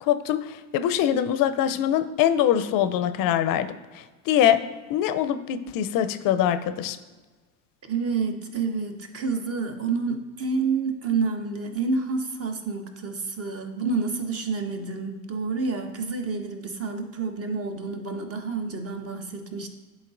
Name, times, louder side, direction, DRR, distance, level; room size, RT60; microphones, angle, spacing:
voice 1, 0.0-4.6 4.9-7.0, left 10 dB, 50° left, 12 dB, 0.6 m, -23 dB
voice 2, 7.8-19.7, right 4 dB, 30° right, 5 dB, 1.0 m, -29 dB
11.0 x 4.2 x 2.5 m, 1.3 s
hypercardioid pair, 75°, 45 cm